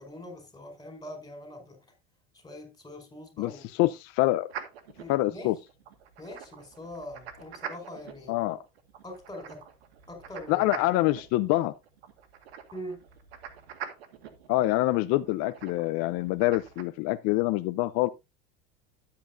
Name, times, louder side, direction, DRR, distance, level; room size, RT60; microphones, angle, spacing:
voice 1, 0.0-1.9 2.3-3.7 5.0-5.5 6.2-8.4 9.0-9.6 10.1-10.8 12.7-13.0, left 1 dB, 15° left, 5.1 m, -43 dB
voice 2, 3.4-4.5 5.1-5.6 8.3-8.6 10.5-11.7 14.5-18.1, left 17 dB, 55° left, 0.7 m, -26 dB
sound 1, 4.5-16.8, right 8 dB, 90° right, 1.7 m, -45 dB
12.5 x 8.7 x 2.6 m
supercardioid pair, 95°, 31 cm